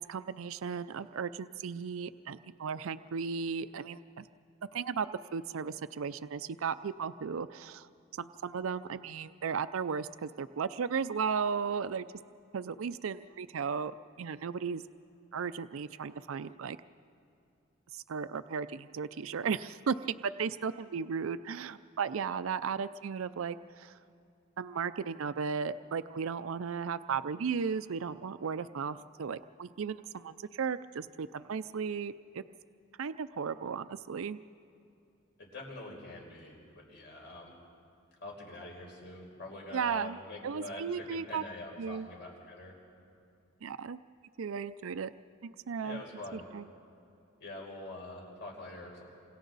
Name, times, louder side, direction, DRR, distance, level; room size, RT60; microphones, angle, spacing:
voice 1, 0.0-4.3 4.7-7.9 8.2-12.0 12.5-13.9 14.2-14.8 15.3-16.8 17.9-23.9 24.6-32.4 33.0-34.4 39.7-40.2 40.4-41.4 41.8-42.1 43.6-44.0 44.4-45.1 45.4-46.0 46.3-46.6, right 6 dB, 85° right, 13 dB, 0.5 m, -35 dB
voice 2, 35.4-37.6 38.2-42.8 45.8-46.4 47.4-49.0, left 2 dB, 60° left, -2 dB, 5.4 m, -45 dB
28.5 x 26.5 x 4.0 m, 2.7 s
head